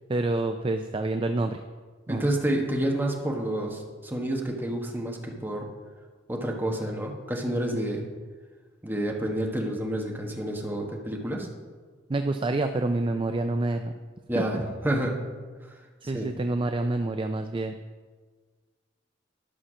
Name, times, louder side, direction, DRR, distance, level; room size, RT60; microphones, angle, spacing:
voice 1, 0.1-1.6 2.1-2.3 12.1-13.9 14.4-14.5 16.1-17.7, right 2 dB, 25° right, 6 dB, 0.4 m, -27 dB
voice 2, 2.1-5.7 6.3-8.0 8.8-11.5 14.3-14.6 14.8-15.2 16.1-16.3, right 1 dB, 10° right, 0 dB, 1.3 m, -29 dB
11.5 x 5.8 x 6.2 m, 1.5 s
head